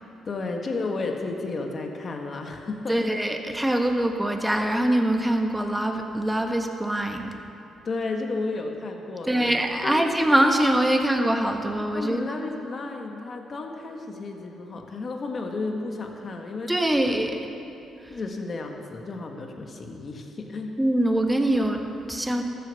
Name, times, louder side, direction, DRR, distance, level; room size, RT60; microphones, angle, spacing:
voice 1, 0.2-3.1 7.8-9.5 9.8-10.0 11.9-16.7 17.2-17.3 18.1-20.7, left 3 dB, 40° left, 3 dB, 1.4 m, -32 dB
voice 2, 2.9-7.3 9.3-12.2 16.7-17.5 20.8-22.4, right 1 dB, 5° right, 4 dB, 1.2 m, -23 dB
13.5 x 8.0 x 6.9 m, 2.8 s
cardioid pair, 90°, 0 cm